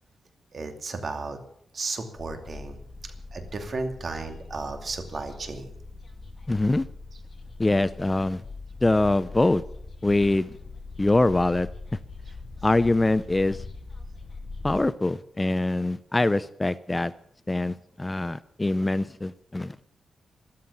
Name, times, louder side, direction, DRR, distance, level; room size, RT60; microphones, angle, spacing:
voice 1, 0.5-1.4 1.7-2.8 3.0-5.7, right 3 dB, 45° right, 6 dB, 2.6 m, -34 dB
sound 1, 2.1-14.8, left 3 dB, 45° left, 2.6 m, -42 dB
voice 2, 6.5-6.9 7.6-8.4 8.8-9.6 10.0-10.5 11.0-11.7 12.6-13.6 14.6-17.1 17.5-19.8, left 2 dB, 15° left, 16 dB, 0.5 m, -24 dB
13.5 x 13.0 x 7.0 m, 0.71 s
wide cardioid pair, 110°, 0 cm